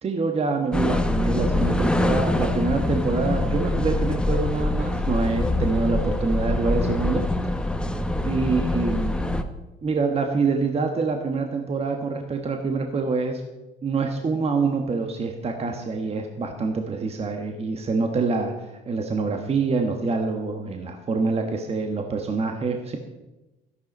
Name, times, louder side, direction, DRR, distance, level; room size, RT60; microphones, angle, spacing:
voice 1, 0.0-7.2 8.2-9.1 9.8-13.4 13.8-23.0, right 4 dB, 30° right, 4 dB, 1.4 m, -26 dB
sound 1, 0.7-9.4, left 1 dB, 5° left, 1.0 m, -24 dB
13.0 x 11.5 x 5.4 m, 1.1 s
cardioid pair, 100°, 19 cm